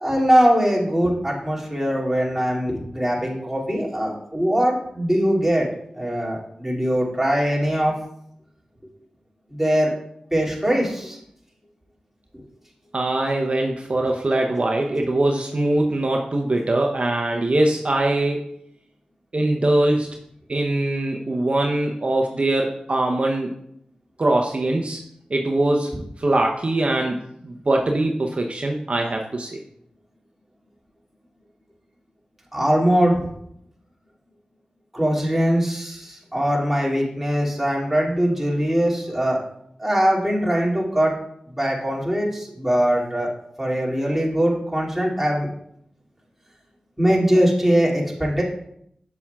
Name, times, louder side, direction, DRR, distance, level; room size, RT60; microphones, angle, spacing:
voice 1, 0.0-5.7 6.0-7.9 9.5-9.9 10.3-11.2 32.5-33.2 34.9-39.4 39.8-41.1 41.5-43.3 43.6-45.5 47.0-48.4, equal, 10° right, -4 dB, 2.3 m, -21 dB
voice 2, 12.9-18.4 19.3-20.1 20.5-23.5 24.2-25.0 25.3-25.9 26.2-29.6, right 2 dB, 50° right, 1 dB, 0.7 m, -22 dB
7.1 x 7.0 x 2.3 m, 0.73 s
cardioid pair, 40°, 3 cm